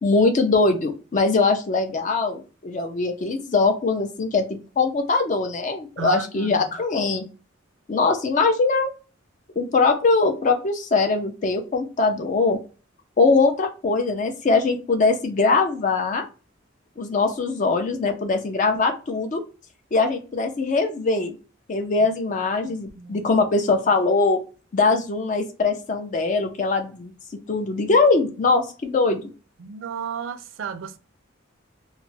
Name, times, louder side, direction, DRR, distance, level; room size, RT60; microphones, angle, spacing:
voice 1, 0.0-7.2 7.9-8.9 9.6-12.6 13.2-16.2 17.0-19.4 19.9-21.4 21.7-24.4 24.7-27.1 27.5-29.2, left 3 dB, 40° left, 0.4 m, -21 dB
voice 2, 6.0-6.6 22.9-23.3 29.6-31.0, right 6 dB, 75° right, 0.4 m, -33 dB
2.3 x 2.0 x 3.8 m
head